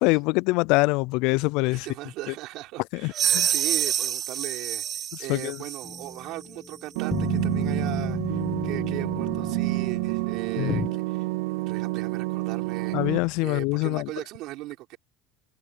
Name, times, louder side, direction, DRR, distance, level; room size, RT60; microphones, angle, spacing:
voice 1, 0.0-1.9 3.0-3.5 5.3-5.6 10.6-10.9 12.9-14.1, left 25 dB, 65° left, 0.3 m, -24 dB
voice 2, 1.6-4.8 5.2-11.3 11.7-15.0, right 18 dB, 55° right, 4.7 m, -38 dB
sound 1, 3.1-6.1, right 10 dB, 35° right, 0.6 m, -27 dB
sound 2, 5.8-10.9, left 4 dB, 15° left, 1.3 m, -33 dB
sound 3, 7.0-13.2, right 23 dB, 85° right, 0.3 m, -28 dB
cardioid pair, 150°, 0 cm